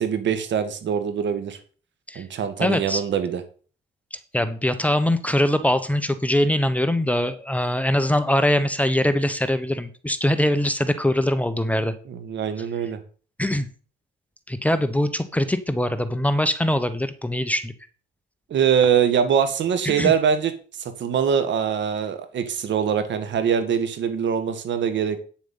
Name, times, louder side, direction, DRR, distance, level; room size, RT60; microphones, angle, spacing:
voice 1, 0.0-1.6 2.2-3.4 12.1-13.0 18.5-20.5 21.0-25.2, right 7 dB, 65° right, 9 dB, 1.8 m, -23 dB
voice 2, 2.6-3.0 4.1-11.9 13.4-13.7 14.5-17.7 19.8-20.1, left 1 dB, 5° left, 10 dB, 1.0 m, -22 dB
9.2 x 7.2 x 5.5 m, 0.40 s
cardioid pair, 90°, 20 cm